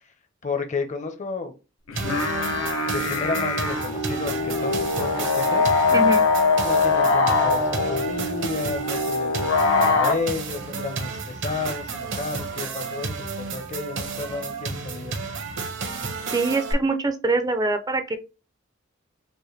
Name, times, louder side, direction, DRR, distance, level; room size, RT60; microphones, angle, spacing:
voice 1, 0.4-1.5 2.8-5.6 6.6-15.2, left 3 dB, 35° left, 0.7 m, -32 dB
sound 1, 1.9-10.1, left 4 dB, 85° left, 0.9 m, -22 dB
sound 2, 1.9-16.7, right 4 dB, 60° right, 0.9 m, -32 dB
voice 2, 5.9-6.2 16.3-18.2, right 3 dB, 20° right, 0.5 m, -24 dB
5.4 x 2.2 x 3.2 m
head